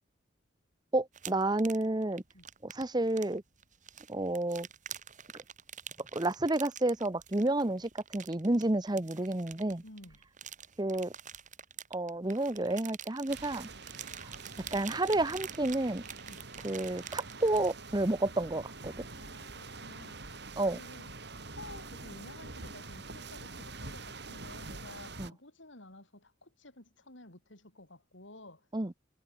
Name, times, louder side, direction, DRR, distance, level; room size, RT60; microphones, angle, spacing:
voice 1, 0.9-2.2 2.6-3.4 4.1-4.7 6.1-9.8 10.8-11.1 11.9-13.7 14.7-16.0 16.6-18.9 20.6-20.8 25.2-25.3 28.7-28.9, right 2 dB, 20° right, 0.9 m, -30 dB
sound 1, 1.1-17.8, right 9 dB, 40° right, 5.4 m, -47 dB
voice 2, 9.8-10.2 16.2-16.4 18.9-20.4 20.7-21.1 21.5-28.7, left 2 dB, 70° left, 6.1 m, -52 dB
sound 2, 13.3-25.3, right 3 dB, 60° right, 5.8 m, -46 dB
head